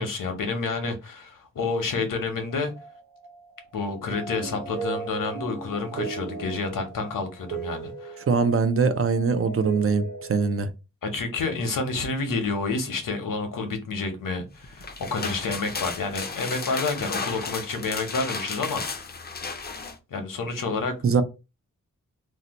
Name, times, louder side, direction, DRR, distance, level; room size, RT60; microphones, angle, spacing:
voice 1, 0.0-2.7 3.7-8.2 11.0-19.0 20.1-20.9, left 3 dB, 80° left, 0.9 m, -29 dB
sound 1, 2.5-10.7, right 4 dB, 75° right, 0.7 m, -37 dB
voice 2, 8.3-10.7 21.0-21.2, right 5 dB, 45° right, 0.4 m, -22 dB
sound 2, 14.6-20.0, left 4 dB, 30° left, 0.4 m, -34 dB
2.7 x 2.1 x 4.0 m
wide cardioid pair, 140°, 32 cm